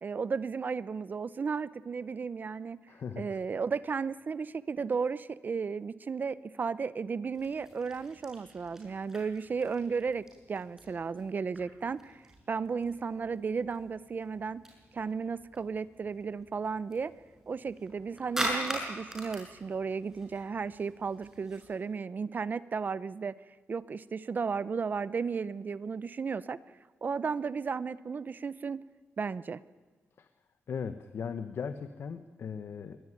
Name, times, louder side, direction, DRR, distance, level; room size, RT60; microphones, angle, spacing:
voice 1, 0.0-2.8 3.2-12.2 12.5-14.6 14.9-17.1 17.5-23.3 23.7-26.6 27.0-28.8 29.2-29.6, right 5 dB, 40° right, 18 dB, 0.6 m, -34 dB
voice 2, 2.9-3.4 30.2-30.3 30.7-33.0, left 6 dB, 60° left, 10 dB, 1.1 m, -38 dB
sound 1, 7.3-21.7, right 1 dB, 10° right, 6.9 m, -43 dB
22.5 x 18.5 x 9.9 m, 1.4 s
wide cardioid pair, 150°, 5 cm